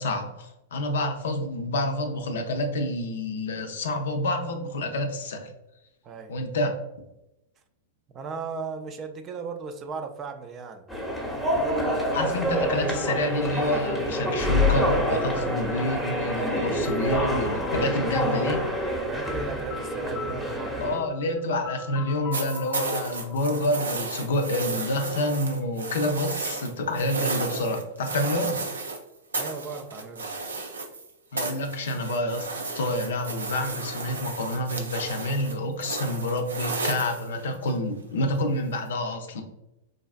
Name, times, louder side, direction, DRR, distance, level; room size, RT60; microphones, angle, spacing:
voice 1, 0.0-5.5 6.3-6.8 12.1-18.7 20.8-28.6 31.3-39.4, left 1 dB, 70° left, 5 dB, 0.5 m, -28 dB
voice 2, 8.1-10.9 19.0-21.0 28.2-28.3 29.3-30.3, right 4 dB, 30° right, 7 dB, 0.4 m, -37 dB
sound 1, 10.9-21.0, equal, ahead, 0.8 m, -27 dB
sound 2, 13.0-24.7, left 7 dB, 25° left, 0.5 m, -43 dB
sound 3, 22.3-29.0 29.3-31.1 31.4-37.7 38.9-39.0, right 3 dB, 90° right, 0.5 m, -33 dB
4.0 x 2.4 x 2.3 m, 0.91 s
hypercardioid pair, 105°, 0 cm